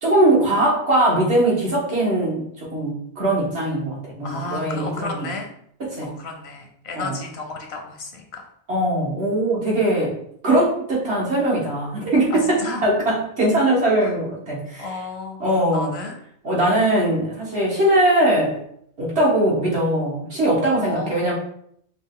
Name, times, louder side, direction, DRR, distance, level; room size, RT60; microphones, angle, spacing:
voice 1, 0.0-5.3 5.8-6.1 6.9-7.2 8.7-10.2 10.4-14.9 15.4-15.9 16.4-18.6 19.0-21.3, right 1 dB, 85° right, -4 dB, 1.8 m, -21 dB
voice 2, 4.2-5.5 6.0-8.5 12.3-12.8 14.0-14.1 14.8-15.4 15.7-16.1 20.8-21.3, left 3 dB, 80° left, 3 dB, 1.1 m, -32 dB
5.3 x 2.4 x 3.7 m, 0.69 s
omnidirectional pair, 1.1 m